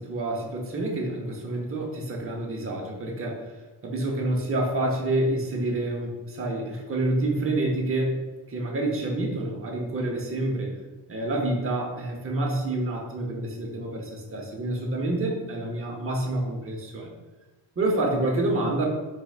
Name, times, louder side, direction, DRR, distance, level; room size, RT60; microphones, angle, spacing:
voice 1, 0.0-3.4 3.8-8.2 8.5-10.7 11.1-17.1 17.8-18.9, right 2 dB, 30° right, -1 dB, 0.7 m, -28 dB
4.7 x 4.1 x 2.3 m, 1.2 s
wide cardioid pair, 180°, 44 cm